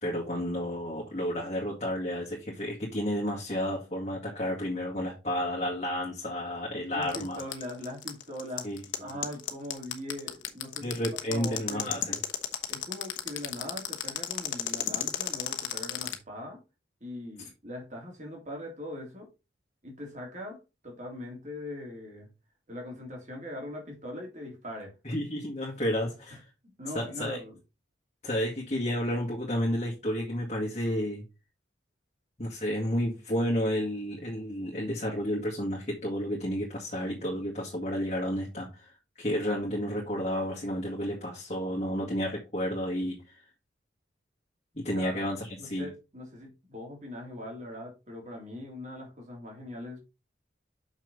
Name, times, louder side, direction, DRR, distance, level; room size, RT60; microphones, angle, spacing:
voice 1, 0.0-7.4 8.6-9.1 10.8-12.2 25.0-26.4 26.9-27.4 28.2-31.2 32.4-43.4 44.8-45.9, equal, 35° left, 2.0 m, -31 dB
voice 2, 6.9-8.7 9.0-11.0 11.3-11.9 12.7-16.6 17.0-19.3 19.8-20.6 20.8-22.3 22.7-24.9 26.8-27.5 44.9-45.2 45.6-50.0, left 1 dB, 40° right, 2.9 m, -41 dB
sound 1, 7.0-16.1, left 11 dB, 75° left, 1.2 m, -32 dB
6.6 x 6.0 x 4.0 m
head